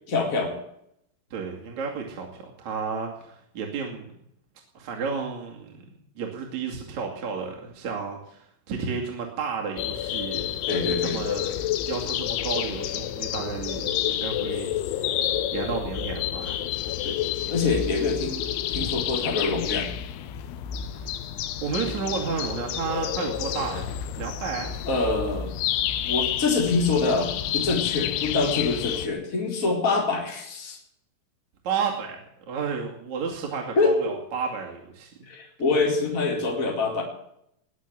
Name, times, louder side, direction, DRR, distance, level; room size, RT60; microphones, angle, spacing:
voice 1, 0.1-0.6 10.7-11.2 17.0-17.2 17.5-19.9 24.9-25.5 26.1-30.8 33.8-33.9 35.3-37.0, left 3 dB, 20° left, 0 dB, 3.9 m, -25 dB
voice 2, 1.3-4.1 4.7-5.8 6.2-15.2 15.5-16.7 20.9-21.1 21.6-23.9 24.2-24.7 31.6-35.1, right 5 dB, 45° right, 0 dB, 3.0 m, -32 dB
sound 1, 9.8-29.1, left 11 dB, 80° left, 3.4 m, -29 dB
20.5 x 7.4 x 9.4 m, 0.74 s
omnidirectional pair, 5.5 m